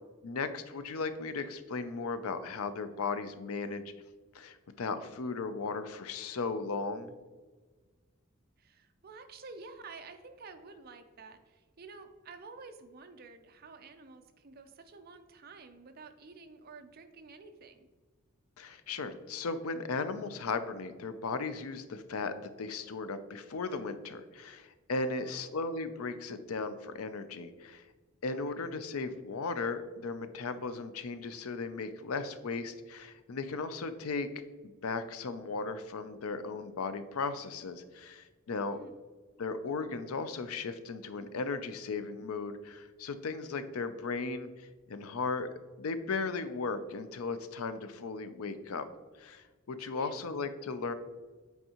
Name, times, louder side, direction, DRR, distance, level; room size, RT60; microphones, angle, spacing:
voice 1, 0.2-3.9 4.3-7.1 18.6-27.8 28.2-34.3 34.6-38.8 39.4-45.5 45.8-48.9 49.2-50.9, left 4 dB, 90° left, 11 dB, 0.5 m, -36 dB
voice 2, 8.6-17.9 25.0-25.5 38.6-39.0 49.8-50.2, right 4 dB, 45° right, 8 dB, 0.5 m, -51 dB
7.9 x 4.6 x 2.9 m, 1.3 s
head